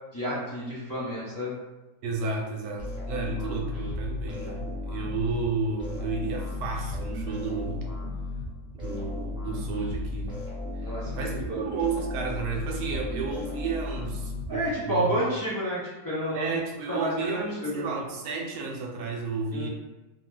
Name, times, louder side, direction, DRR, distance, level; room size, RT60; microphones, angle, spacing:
voice 1, 0.1-1.5 3.2-3.3 10.8-11.6 14.5-16.6 16.9-17.9 19.5-19.7, equal, 30° left, -10 dB, 0.4 m, -30 dB
voice 2, 2.0-7.9 8.7-10.3 11.2-15.1 16.3-19.7, right 4 dB, 85° right, 0 dB, 1.1 m, -32 dB
sound 1, 2.8-15.0, left 2 dB, 5° right, 0.7 m, -35 dB
2.7 x 2.2 x 3.2 m, 1.0 s
omnidirectional pair, 1.6 m